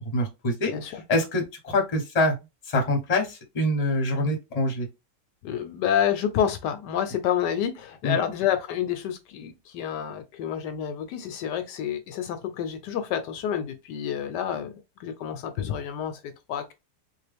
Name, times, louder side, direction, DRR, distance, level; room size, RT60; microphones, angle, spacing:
voice 1, 0.1-2.4 2.6-4.9 8.0-8.2, left 1 dB, 25° left, 0.9 m, -25 dB
voice 2, 5.4-14.7 15.0-16.7, left 9 dB, 75° left, 1.1 m, -29 dB
3.6 x 2.5 x 3.3 m
omnidirectional pair, 1.9 m